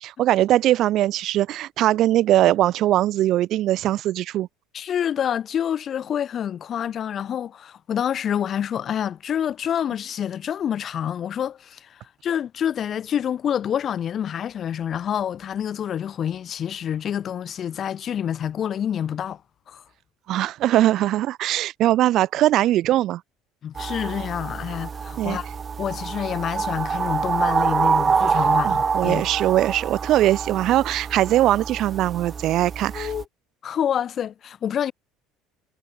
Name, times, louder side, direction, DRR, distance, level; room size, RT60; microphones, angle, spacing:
voice 1, 0.0-4.5 20.3-23.2 25.2-25.4 28.6-33.1, right 14 dB, 50° right, 0.9 m, -21 dB
voice 2, 4.7-19.4 19.7-19.8 23.6-25.5 25.8-29.2 32.9-33.2 33.6-34.9, left 9 dB, 35° left, 1.5 m, -27 dB
sound 1, 23.8-33.2, right 6 dB, 25° right, 0.6 m, -26 dB
cardioid pair, 135°, 0 cm